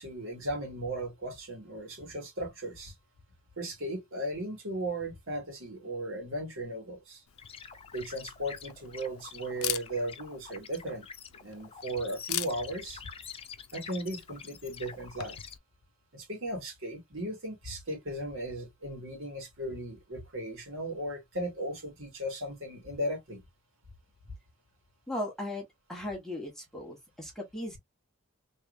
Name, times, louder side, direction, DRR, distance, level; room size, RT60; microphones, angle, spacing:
voice 1, 0.0-2.9 3.6-7.2 7.9-11.0 11.4-13.0 13.7-15.4 16.1-23.4, right 1 dB, 70° right, 2.1 m, -36 dB
Camera, 7.3-15.6, left 14 dB, 90° left, 0.5 m, -42 dB
sound 1, 7.4-15.5, left 6 dB, 25° left, 0.5 m, -47 dB
voice 2, 25.1-27.8, left 1 dB, ahead, 1.2 m, -37 dB
3.4 x 3.2 x 2.5 m
head